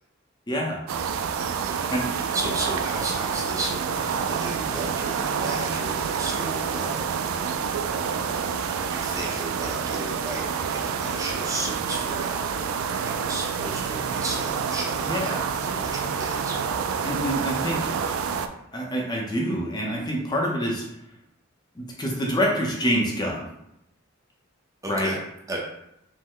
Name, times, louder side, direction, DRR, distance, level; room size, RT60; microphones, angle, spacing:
voice 1, 0.5-0.8 1.9-2.1 15.1-15.5 17.0-18.2 18.7-20.9 21.8-23.5 24.9-25.1, equal, 20° left, -1 dB, 0.6 m, -26 dB
sound 1, 0.9-18.5, right 6 dB, 85° right, 0.3 m, -28 dB
voice 2, 1.6-12.5 12.9-16.6 24.8-25.2 25.5-25.6, right 1 dB, 15° right, -2 dB, 0.7 m, -35 dB
5.2 x 2.1 x 3.7 m, 0.81 s
head